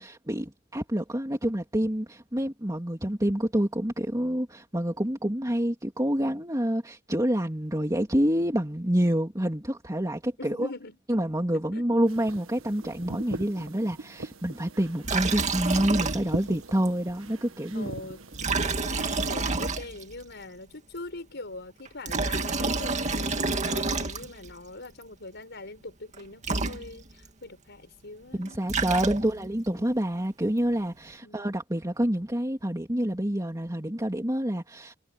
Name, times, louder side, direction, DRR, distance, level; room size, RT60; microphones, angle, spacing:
voice 1, 0.0-10.7 11.1-17.9 28.3-34.9, equal, 15° right, 3.0 m, -27 dB
voice 2, 10.4-11.0 11.7-11.8 17.7-18.2 18.7-29.9 31.2-31.5, left 2 dB, 60° left, 5.6 m, -43 dB
sound 1, 12.0-18.6, right 2 dB, 80° right, 1.7 m, -41 dB
Liquid, 15.0-16.6 16.8-16.9 18.3-20.2 21.8-24.5 26.1-26.2 26.4-27.3 28.4-29.5, right 3 dB, 35° right, 2.1 m, -29 dB
head